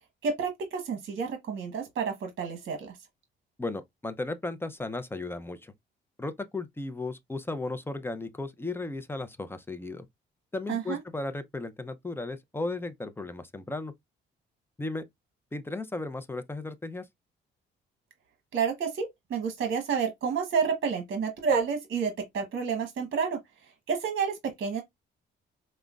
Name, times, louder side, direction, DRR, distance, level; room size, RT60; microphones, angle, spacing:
voice 1, 0.2-2.9 10.7-11.0 18.5-23.4 23.9-24.8, right 6 dB, 60° right, 1.0 m, -29 dB
voice 2, 3.6-5.7 6.2-10.1 10.5-13.9 14.8-15.0 15.5-17.0, left 2 dB, 10° left, 0.5 m, -35 dB
5.0 x 2.1 x 2.3 m
cardioid pair, 90°, 20 cm